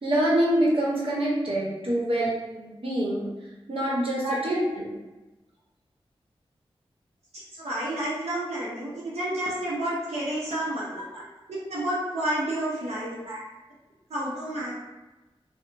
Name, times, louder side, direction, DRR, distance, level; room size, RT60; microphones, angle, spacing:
voice 1, 0.0-3.3 3.7-4.9 11.1-11.2 13.2-13.4, right 1 dB, 60° right, -5 dB, 0.8 m, -26 dB
voice 2, 4.2-4.6 7.3-11.0 11.5-13.1 14.1-14.7, right 1 dB, 90° right, -8 dB, 0.6 m, -30 dB
2.9 x 2.0 x 2.6 m, 1.1 s
wide cardioid pair, 65°, 10 cm